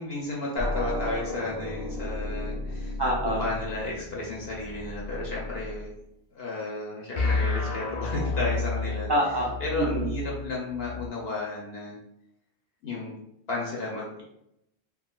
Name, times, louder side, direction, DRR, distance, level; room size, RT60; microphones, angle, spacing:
voice 1, 0.0-3.0 3.2-5.9 6.3-9.1 9.6-11.9 12.8-13.2 13.5-14.1, left 2 dB, 70° left, -3 dB, 0.8 m, -33 dB
sound 1, 0.6-5.9 7.2-11.1, left 3 dB, 45° left, 0.5 m, -32 dB
voice 2, 3.0-3.4 9.1-9.5 9.8-10.1, right 1 dB, 25° right, -5 dB, 0.7 m, -25 dB
3.7 x 2.0 x 2.3 m, 0.81 s
omnidirectional pair, 1.1 m